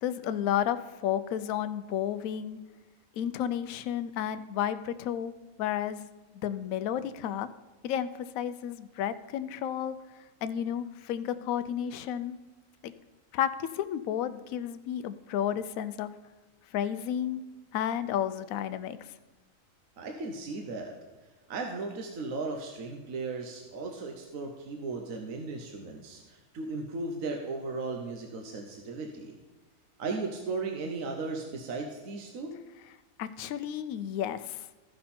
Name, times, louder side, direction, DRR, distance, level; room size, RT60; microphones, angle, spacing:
voice 1, 0.0-2.6 3.2-5.3 5.6-6.1 6.3-7.5 7.8-9.9 10.4-12.4 12.8-12.9 13.3-16.1 16.7-17.4 17.7-19.0 33.2-34.6, left 10 dB, 75° left, 12 dB, 1.0 m, -32 dB
voice 2, 20.0-21.0 21.5-29.4 30.0-32.6, right 3 dB, 65° right, 2 dB, 1.3 m, -36 dB
14.0 x 5.6 x 4.3 m, 1.2 s
omnidirectional pair, 1.5 m